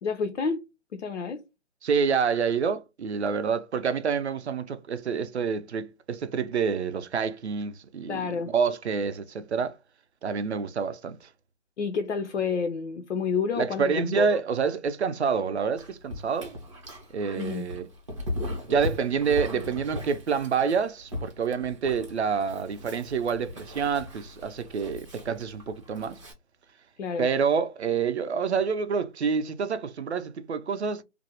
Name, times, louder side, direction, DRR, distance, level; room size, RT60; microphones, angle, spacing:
voice 1, 0.0-1.4 8.1-8.5 11.8-14.4 17.3-17.7 27.0-27.3, left 5 dB, 70° left, 0.5 m, -29 dB
voice 2, 1.8-9.8 10.2-11.3 13.6-16.5 17.1-17.9 18.7-26.2 27.2-31.0, right 6 dB, 65° right, 0.5 m, -27 dB
Dog, 15.8-26.3, left 1 dB, 25° right, 0.6 m, -38 dB
2.5 x 2.0 x 2.7 m
hypercardioid pair, 170°, 36 cm